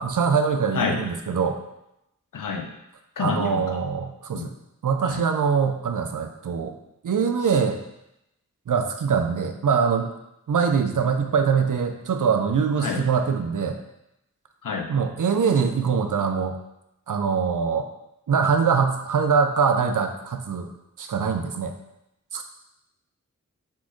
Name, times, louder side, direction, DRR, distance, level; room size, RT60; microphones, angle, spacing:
voice 1, 0.0-1.6 3.2-4.5 4.8-6.7 7.0-7.8 8.7-10.1 10.5-13.8 14.9-16.6 17.1-17.9 18.3-20.7 21.0-21.7 22.3-22.4, right 6 dB, 80° right, 6 dB, 0.5 m, -23 dB
voice 2, 2.3-2.7 3.2-3.8 4.3-4.5 5.0-5.2 12.8-13.0 14.6-14.9, left 5 dB, 90° left, 3 dB, 0.6 m, -28 dB
4.1 x 3.7 x 3.1 m, 0.86 s
wide cardioid pair, 55°, 31 cm